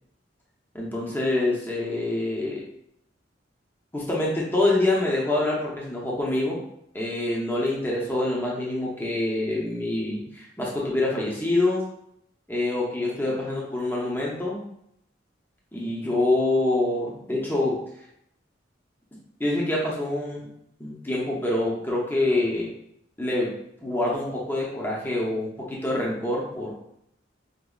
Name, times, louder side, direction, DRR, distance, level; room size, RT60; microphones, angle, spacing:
voice 1, 0.7-2.6 3.9-6.6 6.9-11.8 12.5-14.6 15.7-17.8 19.4-20.5 20.8-22.7 23.2-23.5 23.8-26.9, left 2 dB, 10° left, -4 dB, 0.7 m, -26 dB
5.0 x 2.6 x 2.3 m, 0.75 s
head